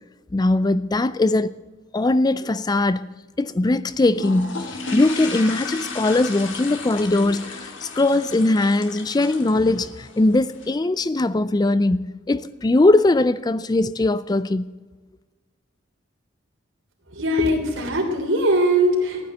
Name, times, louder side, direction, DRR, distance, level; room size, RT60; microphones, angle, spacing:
voice 1, 0.3-1.6 1.9-3.1 3.4-14.7, left 2 dB, 20° left, 0.3 m, -20 dB
sound 1, 4.1-10.7, left 3 dB, 65° left, 2.3 m, -34 dB
voice 2, 17.1-19.3, right 1 dB, 75° right, 3.5 m, -21 dB
15.0 x 9.7 x 7.7 m
head